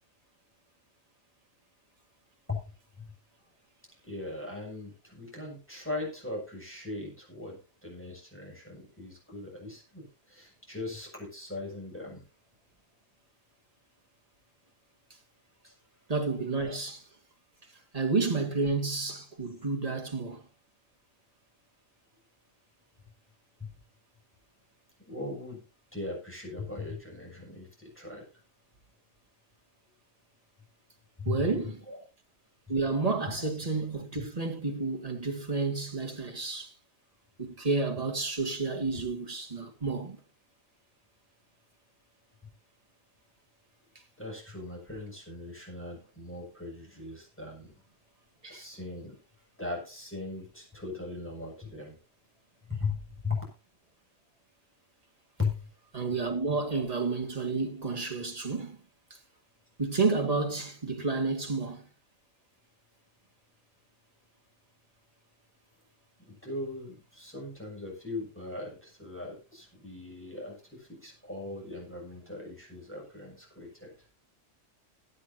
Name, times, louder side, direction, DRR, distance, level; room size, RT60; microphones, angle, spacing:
voice 1, 4.0-12.2 15.6-15.7 16.6-16.8 23.6-23.8 25.0-25.6 25.9-28.2 31.2-32.0 38.9-39.0 42.4-42.5 44.2-47.7 48.5-49.1 49.6-52.0 52.6-53.4 55.4-55.7 56.5-56.6 66.2-73.9, left 3 dB, 10° left, 6.8 m, -39 dB
voice 2, 16.1-17.0 17.9-20.4 31.3-31.8 32.7-36.7 37.4-40.2 48.4-48.6 55.9-58.8 59.8-61.8, right 4 dB, 30° right, 2.2 m, -30 dB
21.0 x 8.9 x 2.8 m
omnidirectional pair, 1.3 m